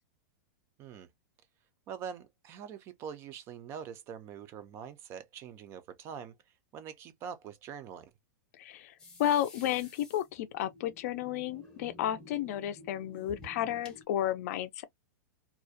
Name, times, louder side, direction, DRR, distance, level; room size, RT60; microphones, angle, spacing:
voice 1, 1.9-6.4 6.7-8.1, right 7 dB, 25° right, 0.3 m, -44 dB
voice 2, 8.6-8.9 9.2-14.8, left 11 dB, 50° left, 0.4 m, -32 dB
sound 1, 9.0-14.0, left 2 dB, 10° left, 0.7 m, -52 dB
2.4 x 2.1 x 2.5 m
supercardioid pair, 160°, 10 cm